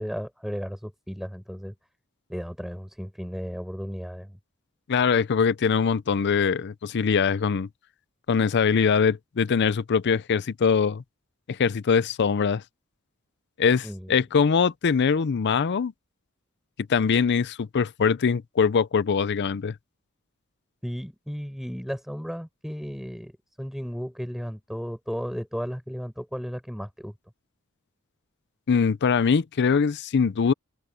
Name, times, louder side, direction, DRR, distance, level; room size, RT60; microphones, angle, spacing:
voice 1, 0.0-1.7 2.3-4.4 13.8-14.2 20.8-27.1, equal, ahead, 6.7 m, -34 dB
voice 2, 4.9-7.7 8.3-11.0 11.5-12.6 13.6-15.9 16.9-19.7 28.7-30.5, left 6 dB, 55° left, 0.5 m, -22 dB
head